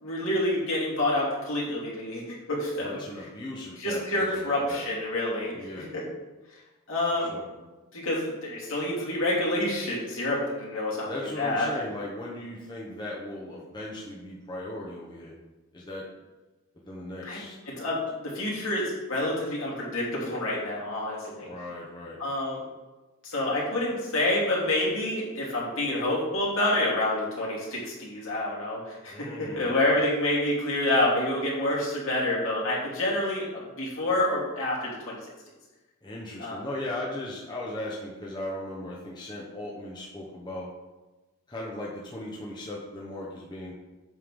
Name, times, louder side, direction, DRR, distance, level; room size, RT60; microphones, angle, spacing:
voice 1, 0.0-3.0 3.8-6.0 6.9-7.3 7.9-11.7 17.2-17.4 17.7-21.5 22.2-22.6 23.2-35.2 36.4-36.6, left 1 dB, 65° left, -6 dB, 2.8 m, -28 dB
voice 2, 2.8-4.8 5.5-5.9 7.2-7.5 11.1-15.3 15.7-16.1 16.7-17.6 21.4-22.2 29.1-29.8 36.0-40.7 41.5-43.7, left 1 dB, 20° left, -4 dB, 1.0 m, -37 dB
8.2 x 6.6 x 3.7 m, 1.2 s
head